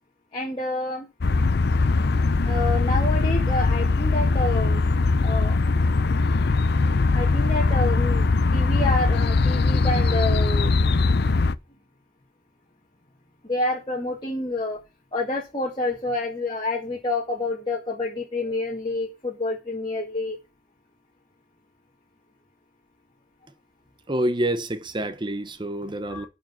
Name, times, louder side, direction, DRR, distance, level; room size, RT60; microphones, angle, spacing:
voice 1, 0.3-1.1 2.4-4.8 5.2-5.6 7.1-8.2 8.5-10.9 13.5-14.8 15.1-20.4 26.1-26.3, left 2 dB, 25° left, 2.1 m, -28 dB
sound 1, 1.2-11.6, left 3 dB, 60° left, 0.5 m, -21 dB
voice 2, 24.1-26.3, right 1 dB, 25° right, 1.0 m, -27 dB
11.5 x 5.1 x 6.0 m
head